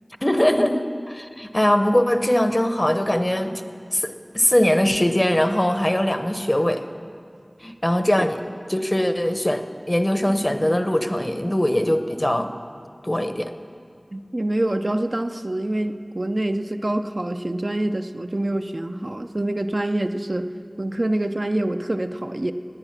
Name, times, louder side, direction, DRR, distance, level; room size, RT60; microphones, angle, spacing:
voice 1, 0.2-3.6 3.9-6.8 7.6-8.4 8.7-12.5 13.0-13.5, left 1 dB, 25° left, 8 dB, 0.8 m, -21 dB
voice 2, 14.1-20.5 20.8-22.5, right 1 dB, 55° right, 7 dB, 0.5 m, -26 dB
18.0 x 9.7 x 5.9 m, 2.3 s
wide cardioid pair, 40°, 0 cm